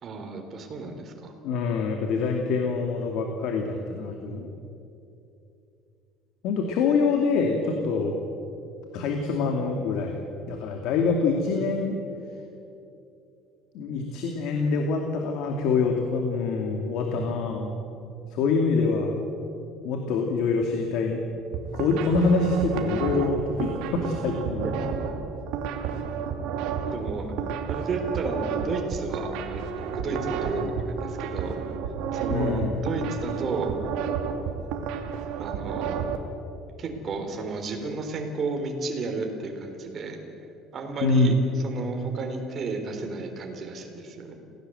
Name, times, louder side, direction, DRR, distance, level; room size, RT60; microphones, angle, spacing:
voice 1, 0.0-1.3 24.6-24.7 25.8-26.0 26.9-27.3 27.7-31.6 32.1-33.8 35.4-36.0 36.8-40.2 40.7-41.3 41.6-44.3, right 3 dB, 35° right, 3 dB, 3.8 m, -32 dB
voice 2, 1.4-4.5 6.4-8.2 8.9-12.0 13.7-17.8 18.3-19.1 19.8-21.2 21.7-24.7 32.3-32.7 41.0-41.4, left 4 dB, 65° left, 3 dB, 2.5 m, -25 dB
sound 1, 21.4-36.2, right 6 dB, 75° right, 2.4 m, -31 dB
27.5 x 17.5 x 7.9 m, 2.7 s
cardioid pair, 150°, 0 cm